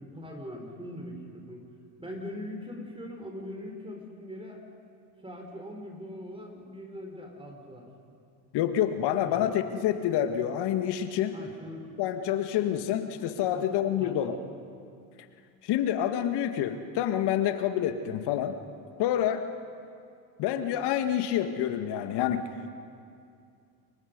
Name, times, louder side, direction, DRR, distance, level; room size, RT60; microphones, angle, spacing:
voice 1, 0.0-1.7 2.0-4.6 5.2-7.9 9.3-9.5 11.3-12.0 13.5-14.4, left 1 dB, 10° right, 2 dB, 4.3 m, -41 dB
voice 2, 8.5-11.4 12.0-14.4 15.6-18.6 19.0-19.4 20.4-22.4, left 10 dB, 55° left, 8 dB, 1.9 m, -27 dB
29.5 x 23.5 x 5.3 m, 2.4 s
hypercardioid pair, 80°, 49 cm